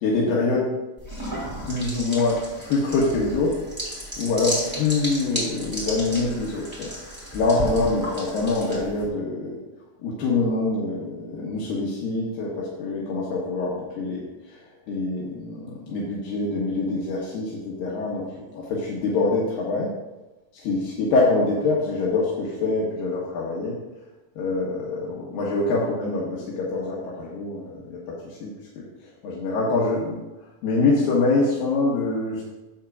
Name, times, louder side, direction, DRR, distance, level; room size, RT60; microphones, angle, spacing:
voice 1, 0.0-0.7 1.6-3.6 4.2-6.9 7.3-9.6 10.0-19.9 20.6-23.8 24.4-30.2 30.6-32.4, left 3 dB, 80° left, -5 dB, 2.9 m, -25 dB
sound 1, 1.0-9.1, equal, 5° right, 2.1 m, -33 dB
12.0 x 7.9 x 2.4 m, 1.1 s
omnidirectional pair, 4.1 m